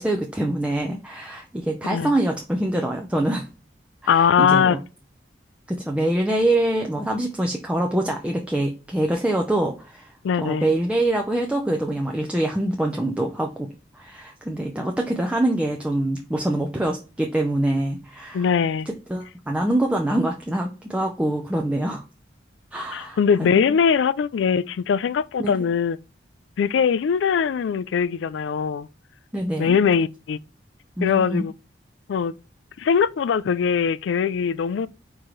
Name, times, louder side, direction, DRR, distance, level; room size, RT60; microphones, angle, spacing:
voice 1, 0.0-3.5 4.0-4.8 5.7-10.1 10.4-13.7 13.9-18.5 18.9-22.0 22.7-23.7 25.4-25.5 29.3-29.8 31.0-31.4, right 1 dB, 5° right, 0.5 m, -25 dB
voice 2, 4.1-4.8 10.2-10.7 18.3-18.9 22.9-26.0 26.6-28.9 29.6-30.4 31.0-31.5 32.1-32.3 32.8-34.9, left 6 dB, 85° left, 0.3 m, -21 dB
4.6 x 3.8 x 3.1 m
head